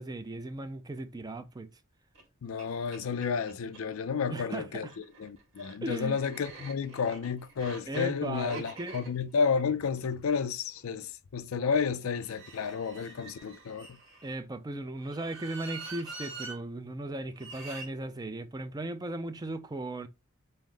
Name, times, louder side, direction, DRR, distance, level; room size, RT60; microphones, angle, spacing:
voice 1, 0.0-1.7 4.3-4.9 5.8-6.2 7.9-9.0 14.2-20.1, right 2 dB, 20° right, 0.4 m, -37 dB
sound 1, 2.1-2.2 2.6-2.7 2.9-3.8 4.7-10.9 12.1-14.4 15.0-16.6 17.4-17.9, right 3 dB, 65° right, 1.5 m, -46 dB
voice 2, 2.4-4.9 5.2-14.0, left 6 dB, 75° left, 0.4 m, -31 dB
5.5 x 2.0 x 3.2 m
head